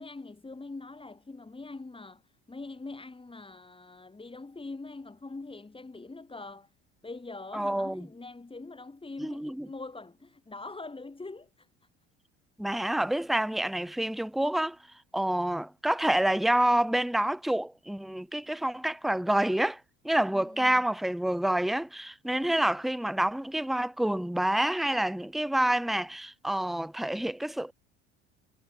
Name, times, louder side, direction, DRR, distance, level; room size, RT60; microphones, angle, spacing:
voice 1, 0.0-6.7 7.0-11.7 20.3-20.8, left 3 dB, 15° left, 7.9 m, -43 dB
voice 2, 7.5-8.1 9.2-9.7 12.6-14.8 15.1-19.8 20.0-27.7, right 1 dB, ahead, 1.2 m, -28 dB
hypercardioid pair, 75°, 32 cm